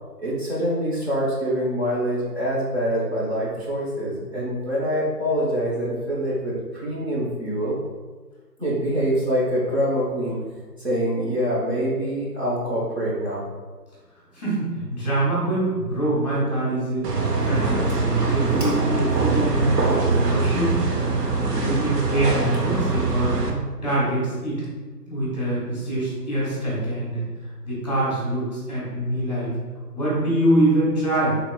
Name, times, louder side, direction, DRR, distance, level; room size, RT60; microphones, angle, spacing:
voice 1, 0.2-7.8 8.6-10.4 10.8-13.4 18.6-18.7, equal, 40° right, -7 dB, 0.9 m, -25 dB
voice 2, 14.3-17.1 17.4-19.8 20.2-20.7 21.4-23.4 23.8-24.6 25.1-27.2 27.6-29.5 29.9-31.4, right 1 dB, 25° left, -7 dB, 1.2 m, -24 dB
sound 1, 17.0-23.5, right 3 dB, 70° right, 0.7 m, -23 dB
3.7 x 3.4 x 2.3 m, 1.4 s
figure-of-eight pair, 160°, 49 cm